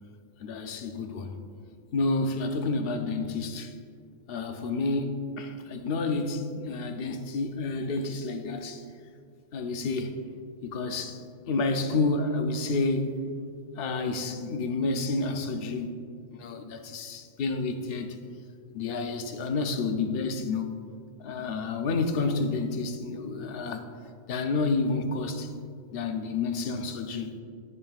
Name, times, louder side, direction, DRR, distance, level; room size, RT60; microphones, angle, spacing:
voice 1, 0.4-1.3 1.9-3.7 4.3-8.8 9.5-10.1 10.6-11.2 11.5-13.1 13.8-16.0 16.3-18.2 18.7-20.8 21.2-23.9 24.3-25.5 25.9-27.3, left 3 dB, 55° left, 6 dB, 0.7 m, -29 dB
13.5 x 5.5 x 2.4 m, 2.2 s
omnidirectional pair, 1.5 m